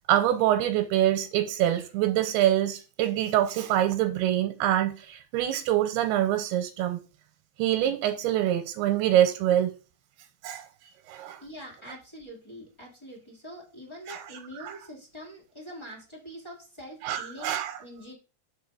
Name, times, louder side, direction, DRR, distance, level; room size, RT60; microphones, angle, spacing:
voice 1, 0.1-7.0 7.6-9.7 10.4-10.6 11.1-11.4 14.1-14.2 14.6-14.8 17.0-17.8, right 12 dB, 85° right, 2.7 m, -25 dB
voice 2, 11.4-18.1, equal, 20° left, 0.8 m, -44 dB
5.5 x 4.6 x 6.1 m
omnidirectional pair, 4.6 m